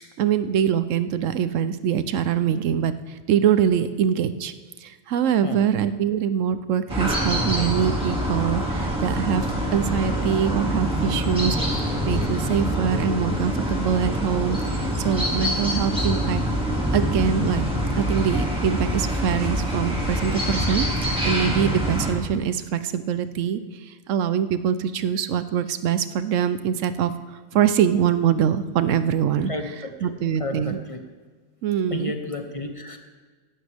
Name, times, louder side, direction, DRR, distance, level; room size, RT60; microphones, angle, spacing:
voice 1, 0.2-4.5 4.8-9.5 9.7-11.6 12.1-16.4 16.9-17.7 18.0-29.5 30.0-30.8 31.6-32.1, right 8 dB, 85° right, 12 dB, 1.0 m, -24 dB
sound 1, 6.9-22.1, equal, 5° right, 2.3 m, -25 dB
voice 2, 29.5-30.1 30.4-31.0 31.9-33.0, left 2 dB, 30° left, 5 dB, 0.9 m, -32 dB
16.5 x 11.5 x 3.5 m, 1.5 s
omnidirectional pair, 1.3 m